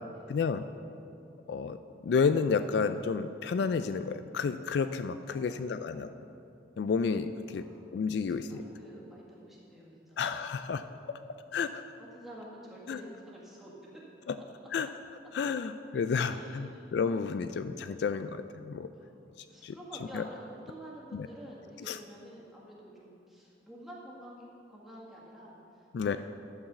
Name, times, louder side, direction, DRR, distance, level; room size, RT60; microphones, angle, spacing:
voice 1, 0.3-0.6 1.5-6.1 6.8-7.6 7.9-8.6 10.2-10.8 11.5-11.8 12.9-13.0 14.3-14.4 14.7-14.9 15.3-18.9 19.6-19.8 20.1-20.2 21.1-21.3 21.9-22.0 25.9-26.2, left 5 dB, 65° left, 11 dB, 0.3 m, -31 dB
voice 2, 5.3-6.3 7.5-8.0 8.3-10.4 10.9-11.2 12.0-14.0 16.3-16.8 18.9-19.2 19.5-26.2, equal, ahead, -5 dB, 1.8 m, -49 dB
12.0 x 4.8 x 6.8 m, 2.7 s
head